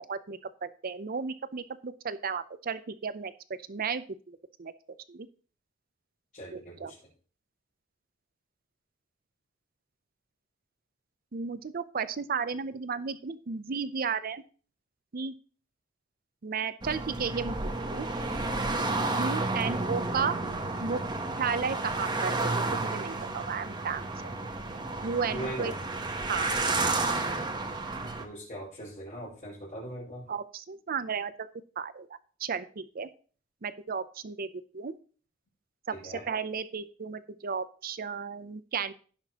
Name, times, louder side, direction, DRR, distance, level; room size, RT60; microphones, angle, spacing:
voice 1, 0.0-3.3 3.7-4.7 5.1-5.3 6.5-6.9 11.3-14.4 15.1-15.3 16.4-18.1 19.2-20.4 20.8-21.0 21.4-24.3 25.0-25.7 26.3-26.5 30.3-31.5 31.8-32.1 32.4-33.1 33.6-35.0 35.9-38.9, right 5 dB, 45° right, 14 dB, 0.6 m, -34 dB
voice 2, 6.3-7.0 25.3-25.8 28.2-30.3 35.9-36.2, right 1 dB, 40° left, -10 dB, 5.0 m, -40 dB
sound 1, 16.8-28.2, right 2 dB, 20° right, 1.0 m, -31 dB
16.5 x 5.9 x 2.9 m, 0.41 s
head